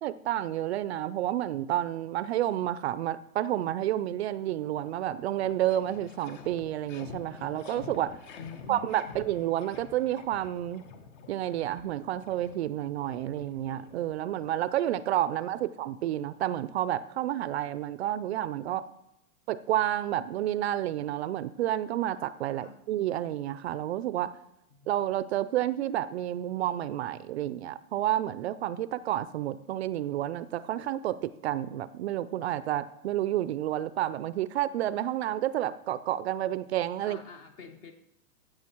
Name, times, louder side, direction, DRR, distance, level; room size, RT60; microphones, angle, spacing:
voice 1, 0.0-8.2 8.7-10.8 11.3-18.8 19.5-24.3 24.9-37.2, right 12 dB, 45° right, 16 dB, 0.5 m, -30 dB
sound 1, 4.7-4.8 5.0-14.5, left 6 dB, 50° left, 1.6 m, -48 dB
voice 2, 8.4-9.3 22.6-22.8 24.7-24.9 37.0-37.9, left 5 dB, 30° left, 8 dB, 0.9 m, -46 dB
13.5 x 7.9 x 4.5 m, 0.89 s
hypercardioid pair, 145°, 45 cm